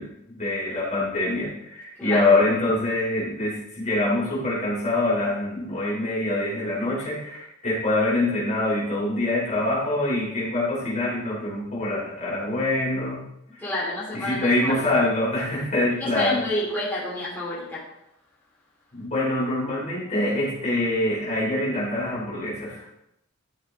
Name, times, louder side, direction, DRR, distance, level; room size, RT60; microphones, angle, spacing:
voice 1, 0.0-13.2 14.1-16.4 18.9-23.0, left 2 dB, 35° left, -7 dB, 4.3 m, -25 dB
voice 2, 13.6-14.9 16.0-17.9, left 1 dB, 10° left, -10 dB, 4.0 m, -29 dB
13.0 x 6.4 x 4.0 m, 0.80 s
head